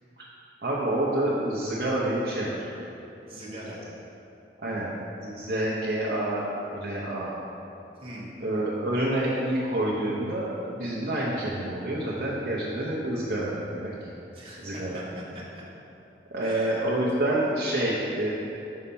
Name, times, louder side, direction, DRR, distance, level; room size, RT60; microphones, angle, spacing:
voice 1, 0.6-2.6 4.6-4.9 5.2-7.3 8.4-14.1 14.6-15.0 16.3-18.3, right 1 dB, 60° right, -7 dB, 0.8 m, -28 dB
voice 2, 3.3-3.8 8.0-8.3 14.3-15.6 16.4-16.8, right 1 dB, 30° right, -7 dB, 1.1 m, -41 dB
5.5 x 4.3 x 5.4 m, 2.9 s
head